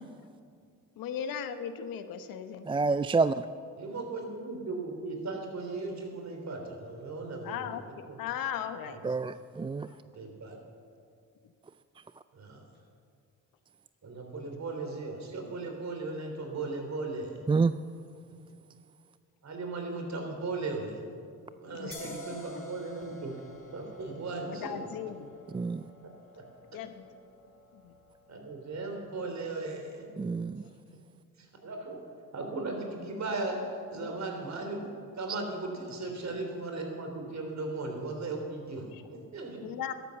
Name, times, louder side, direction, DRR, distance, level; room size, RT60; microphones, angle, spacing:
voice 1, 1.0-2.7 7.4-7.8 8.2-9.2 9.8-10.0 11.4-11.5 21.7-22.6 24.5-25.3 26.7-27.0 27.7-27.9 30.8-30.9 38.9-39.0 39.6-39.9, left 8 dB, 80° left, 10 dB, 1.0 m, -38 dB
voice 2, 2.7-3.3 9.0-9.9 17.5-17.7 25.5-25.8 30.2-30.6, right 4 dB, 15° right, 13 dB, 0.3 m, -27 dB
voice 3, 3.8-7.7 8.1-8.2 8.9-9.0 10.1-10.6 12.3-12.7 14.0-17.5 18.3-18.4 19.4-21.0 21.6-23.4 23.7-24.9 26.0-26.4 26.7-26.8 28.3-30.1 31.4-32.0 32.3-34.9 35.1-39.7, right 3 dB, 55° right, 3 dB, 3.4 m, -37 dB
sound 1, 21.9-29.2, left 1 dB, 40° left, 3.9 m, -50 dB
13.0 x 11.5 x 7.1 m, 2.2 s
supercardioid pair, 65°, 34 cm